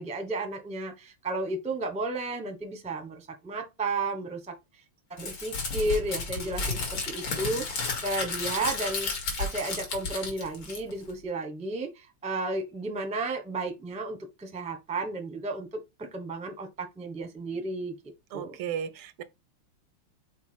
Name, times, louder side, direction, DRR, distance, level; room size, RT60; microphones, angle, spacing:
voice 1, 0.0-4.5 5.1-7.7 8.0-9.1 9.4-15.7 16.0-17.9 18.3-18.6, right 2 dB, 5° right, 0.7 m, -33 dB
Crumpling crinkling, 5.2-11.1, left 3 dB, 80° left, 3.0 m, -32 dB
voice 2, 18.3-19.2, right 8 dB, 85° right, 1.7 m, -34 dB
5.8 x 4.6 x 4.5 m
omnidirectional pair, 2.3 m